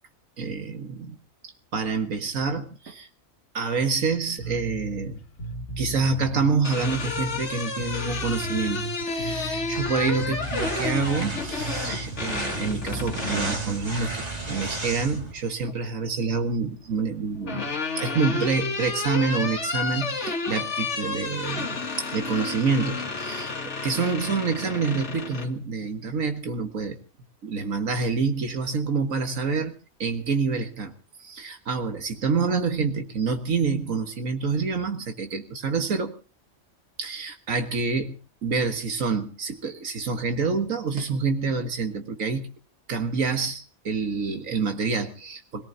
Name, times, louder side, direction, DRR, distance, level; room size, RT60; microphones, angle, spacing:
voice 1, 0.4-1.2 1.7-3.1 3.5-5.2 5.8-23.5 23.8-27.0 27.4-29.7 30.0-30.9 31.2-36.1 37.0-38.2 38.4-42.5 42.9-45.6, right 4 dB, 75° right, 6 dB, 2.0 m, -27 dB
Bass guitar, 4.4-13.8, right 1 dB, 85° left, 2.3 m, -36 dB
sound 1, 6.5-13.6 15.1-15.7 17.0-25.5, left 4 dB, 60° left, 1.9 m, -31 dB
sound 2, 9.7-15.3, right 2 dB, 30° right, 2.1 m, -34 dB
26.5 x 17.5 x 2.8 m, 0.33 s
omnidirectional pair, 1.4 m